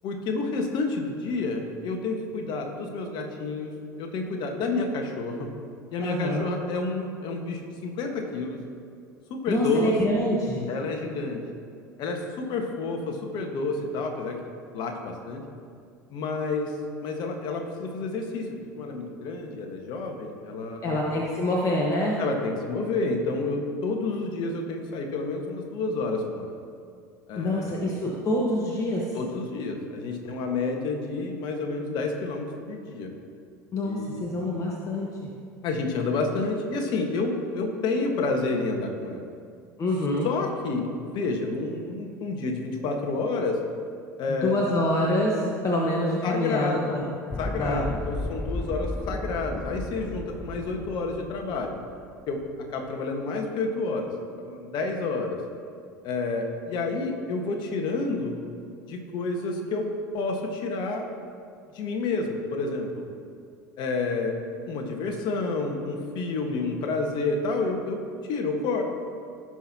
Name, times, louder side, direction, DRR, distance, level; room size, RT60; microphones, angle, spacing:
voice 1, 0.0-3.7 4.0-5.5 5.9-8.6 9.3-10.0 10.7-11.4 12.0-14.4 14.7-15.4 16.1-16.7 17.0-21.0 22.2-26.5 27.3-27.8 29.1-33.1 33.8-34.2 35.6-39.3 40.2-43.6 44.2-44.6 46.2-47.0 47.4-51.8 52.3-54.1 54.4-55.4 56.0-58.4 58.9-61.1 61.7-63.1 63.8-64.4 64.7-68.8, left 3 dB, 50° left, 3 dB, 1.4 m, -29 dB
voice 2, 6.0-6.4 9.5-10.7 20.8-22.2 27.4-29.0 33.7-35.3 39.8-40.3 44.3-47.0 47.6-47.8, left 1 dB, 35° left, -2 dB, 1.3 m, -26 dB
sound 1, 47.3-52.5, left 2 dB, 15° left, 0.4 m, -35 dB
17.5 x 6.1 x 2.9 m, 2.3 s
hypercardioid pair, 75°, 10 cm